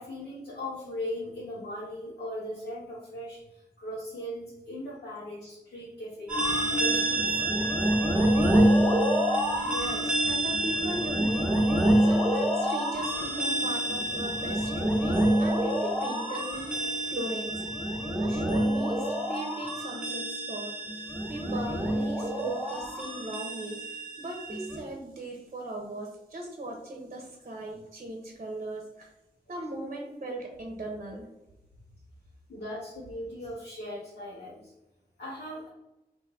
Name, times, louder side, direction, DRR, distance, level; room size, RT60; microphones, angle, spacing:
voice 1, 0.0-7.7 29.5-29.6 32.5-34.7 35.2-35.7, left 1 dB, 90° left, -7 dB, 1.0 m, -39 dB
sound 1, 6.3-24.8, right 1 dB, 5° right, 1.2 m, -27 dB
voice 2, 9.3-17.7 18.1-29.1 29.5-31.3, right 1 dB, 45° right, 1 dB, 0.8 m, -38 dB
3.3 x 2.6 x 3.5 m, 0.97 s
cardioid pair, 50°, 16 cm